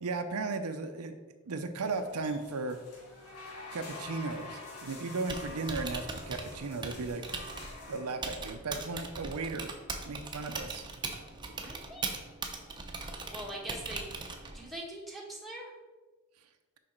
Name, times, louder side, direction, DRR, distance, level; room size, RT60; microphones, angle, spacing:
voice 1, 0.0-1.2 1.5-2.8 3.7-7.2 7.9-9.7 10.1-10.8, right 3 dB, 80° right, 8 dB, 0.6 m, -35 dB
sound 1, 1.8-8.1, left 2 dB, 75° left, 1.8 m, -47 dB
Typing, 5.1-14.7, right 3 dB, 20° right, 0.7 m, -40 dB
voice 2, 11.5-12.1 13.3-14.0 14.5-15.7, right 1 dB, ahead, -4 dB, 1.4 m, -42 dB
6.4 x 4.9 x 4.4 m, 1.2 s
head